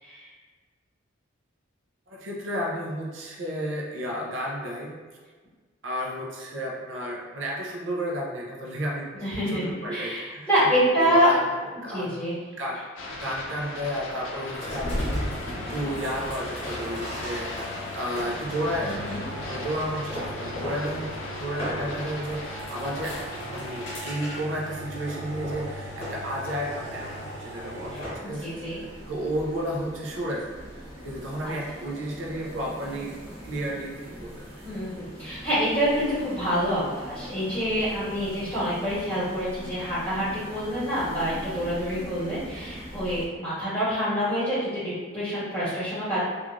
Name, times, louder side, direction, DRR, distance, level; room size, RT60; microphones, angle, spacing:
voice 1, 2.1-5.0 5.8-9.1 9.5-10.5 11.0-11.5 11.8-12.2 12.6-12.8 13.2-19.2 19.5-27.1 27.4-30.5 31.0-33.2 33.4-34.8, equal, 75° right, -2 dB, 0.5 m, -32 dB
voice 2, 9.1-11.3 11.9-12.4 18.8-19.2 28.2-28.8 31.4-31.5 34.6-46.2, equal, 10° left, -13 dB, 1.5 m, -26 dB
sound 1, 13.0-24.0, left 2 dB, 80° left, 0.4 m, -38 dB
sound 2, 14.5-28.3, equal, 30° left, 0.9 m, -35 dB
sound 3, 27.6-43.3, equal, 25° right, 0.9 m, -42 dB
3.0 x 2.4 x 2.4 m, 1.4 s
head